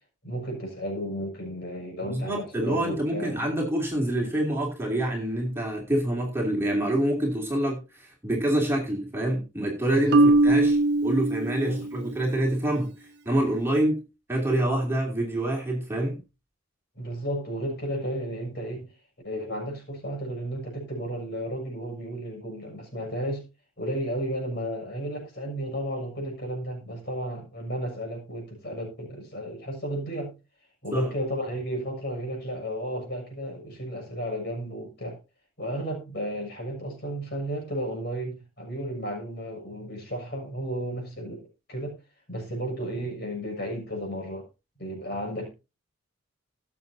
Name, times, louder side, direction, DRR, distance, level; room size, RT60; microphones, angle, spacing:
voice 1, 0.2-3.4 9.8-10.3 11.6-11.9 16.9-18.9 19.2-23.4 23.8-30.3 30.8-35.2 35.6-41.9 42.3-44.5 44.8-45.5, equal, 50° left, 6.8 m, -33 dB
voice 2, 2.0-10.2 10.4-16.2 30.9-31.1, right 1 dB, 10° right, 2.8 m, -26 dB
Marimba xylophone, 10.1-12.2, right 2 dB, 55° right, 0.6 m, -21 dB
19.5 x 7.5 x 2.8 m
head